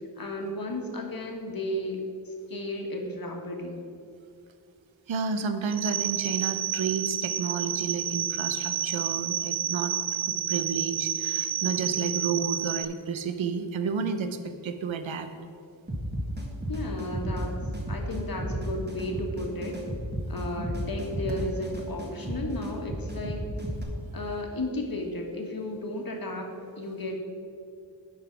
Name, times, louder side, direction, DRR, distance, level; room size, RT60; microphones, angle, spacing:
voice 1, 0.2-3.8 16.7-17.6 17.9-19.8 20.3-23.4 24.1-26.5 26.8-27.2, left 1 dB, 50° left, 2 dB, 1.4 m, -34 dB
voice 2, 5.1-9.9 10.3-15.3, right 5 dB, 90° right, 8 dB, 0.7 m, -31 dB
sound 1, 5.7-12.8, right 10 dB, 50° right, 0.5 m, -30 dB
sound 2, 15.9-23.8, right 1 dB, 20° right, 1.4 m, -33 dB
10.5 x 4.0 x 5.8 m, 2.3 s
cardioid pair, 55°, 45 cm